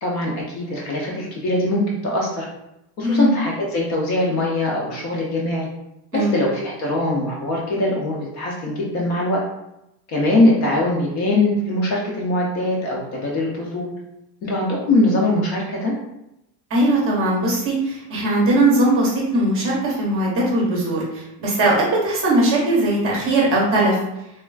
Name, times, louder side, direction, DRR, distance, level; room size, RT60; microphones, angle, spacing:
voice 1, 0.0-2.5 3.0-5.7 6.1-9.4 10.1-13.9 14.4-15.9, left 1 dB, 40° left, -3 dB, 0.4 m, -22 dB
voice 2, 3.0-3.3 6.1-6.4 16.7-24.0, right 1 dB, 30° right, -4 dB, 0.6 m, -19 dB
3.3 x 2.3 x 2.3 m, 0.87 s
cardioid pair, 155°, 47 cm